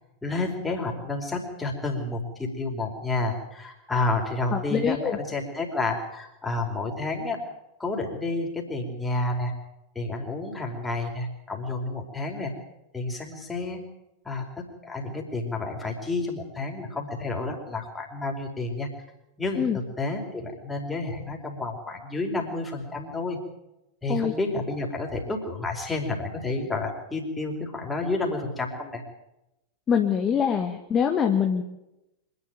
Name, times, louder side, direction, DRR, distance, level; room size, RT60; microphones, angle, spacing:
voice 1, 0.2-7.4 7.8-9.5 9.9-12.5 12.9-13.8 14.2-14.4 14.8-18.9 19.4-19.7 20.0-23.4 24.0-29.0, left 2 dB, 10° left, 1 dB, 4.8 m, -30 dB
voice 2, 4.5-5.2 19.6-19.8 24.1-24.3 29.9-31.6, left 7 dB, 25° left, 4 dB, 1.7 m, -24 dB
25.5 x 11.5 x 9.2 m, 0.89 s
figure-of-eight pair, 90°, 0 cm